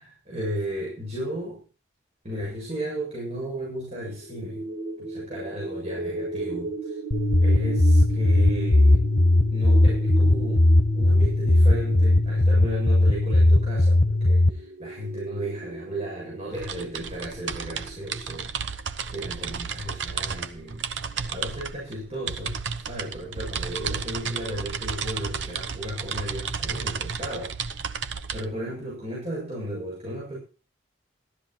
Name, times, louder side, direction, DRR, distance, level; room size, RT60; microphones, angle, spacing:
voice 1, 0.0-1.6 2.2-4.7 5.0-7.0 7.4-9.0 9.5-18.5 19.1-20.8 21.3-22.6 22.9-27.5 28.3-30.4, equal, 35° right, -5 dB, 7.4 m, -34 dB
sound 1, 4.1-18.4, right 4 dB, 50° right, 2.7 m, -37 dB
sound 2, 7.1-14.5, left 1 dB, 45° left, 1.1 m, -19 dB
sound 3, 16.5-28.4, right 6 dB, 75° right, 1.0 m, -33 dB
15.0 x 12.5 x 4.5 m, 0.37 s
head